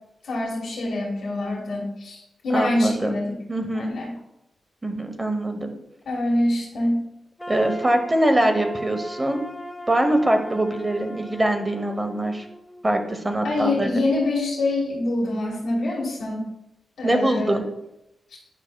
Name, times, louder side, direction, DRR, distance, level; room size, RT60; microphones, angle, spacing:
voice 1, 0.2-3.4 3.7-4.1 6.0-7.0 13.4-16.5 17.0-17.6 18.3-18.4, left 2 dB, 85° left, -4 dB, 1.7 m, -25 dB
voice 2, 2.5-3.2 3.5-4.0 4.8-5.7 7.5-9.4 9.9-12.5 12.8-13.9 17.0-17.6, right 1 dB, 20° right, 5 dB, 0.9 m, -23 dB
sound 1, 7.4-13.3, right 1 dB, 15° left, 0.5 m, -38 dB
9.9 x 5.6 x 2.2 m, 0.86 s
wide cardioid pair, 115°, 0 cm